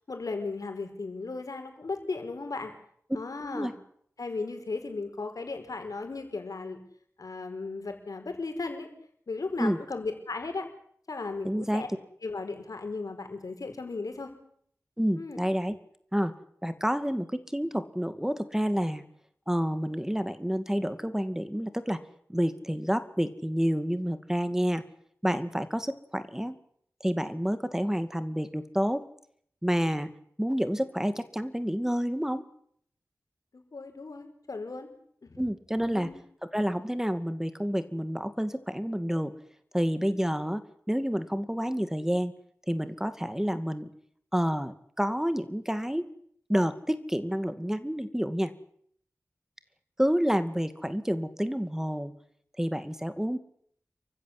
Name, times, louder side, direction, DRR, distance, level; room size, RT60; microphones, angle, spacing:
voice 1, 0.1-2.7 3.1-3.7 4.2-6.8 7.2-8.9 9.3-10.7 11.1-11.9 12.2-14.3 15.2-15.4 33.5-34.9 35.2-35.4 35.9-36.2, left 3 dB, 80° left, 6 dB, 5.4 m, -36 dB
voice 2, 11.4-11.8 15.0-15.8 16.1-16.3 16.6-19.0 19.5-22.0 22.3-24.8 25.2-26.6 27.0-29.0 29.6-30.1 30.4-32.4 35.4-36.1 36.5-39.3 39.7-40.6 40.9-42.3 42.7-43.9 44.3-46.0 46.5-48.5 50.0-52.1 52.6-53.4, equal, 10° right, 11 dB, 2.2 m, -29 dB
28.0 x 15.5 x 9.9 m, 0.66 s
wide cardioid pair, 45°, 6 cm